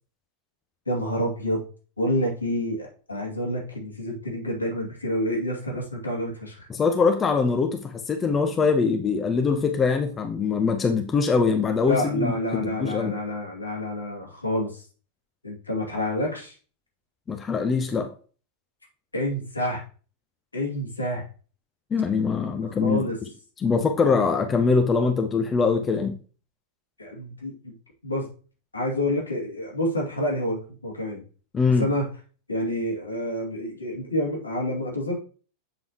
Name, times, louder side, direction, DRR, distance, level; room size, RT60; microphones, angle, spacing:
voice 1, 0.9-1.6 2.0-6.7 11.9-14.8 15.4-16.6 19.1-19.8 20.5-21.2 22.8-23.2 27.0-27.7 28.0-28.3 28.7-31.2 31.8-32.1 32.5-35.2, left 1 dB, 80° left, -2 dB, 2.5 m, -28 dB
voice 2, 6.7-12.3 12.8-13.1 17.3-18.1 21.9-23.1 23.6-26.2 31.5-31.9, left 5 dB, 20° left, 5 dB, 0.9 m, -23 dB
7.9 x 5.3 x 3.0 m, 0.37 s
figure-of-eight pair, 90°, 0 cm